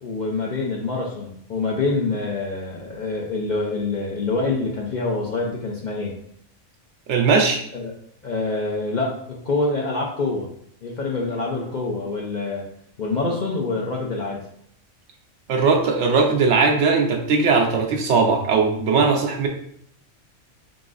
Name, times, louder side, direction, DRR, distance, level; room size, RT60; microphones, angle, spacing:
voice 1, 0.0-6.1 7.7-7.9 8.2-10.5 10.8-12.7 13.0-14.4, left 3 dB, 50° left, -2 dB, 0.6 m, -26 dB
voice 2, 7.1-7.6 15.5-19.5, right 4 dB, 70° right, 3 dB, 0.9 m, -19 dB
3.9 x 3.7 x 2.5 m, 0.67 s
omnidirectional pair, 1.3 m